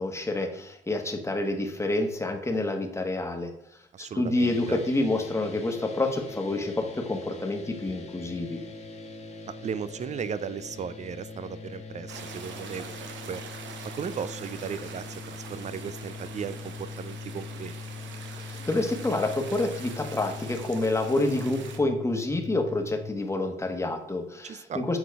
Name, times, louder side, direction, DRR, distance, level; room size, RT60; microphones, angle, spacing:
voice 1, 0.0-3.5 4.0-8.6 18.4-25.0, left 2 dB, 15° left, 4 dB, 1.2 m, -28 dB
voice 2, 3.9-4.8 9.5-13.4 13.8-17.7 24.4-24.9, right 7 dB, 35° right, 15 dB, 0.5 m, -36 dB
sound 1, 4.4-23.1, left 4 dB, 35° left, 1.4 m, -42 dB
sound 2, 12.1-21.8, right 6 dB, 70° right, 1.0 m, -44 dB
7.1 x 3.9 x 4.7 m, 0.75 s
cardioid pair, 90°, 20 cm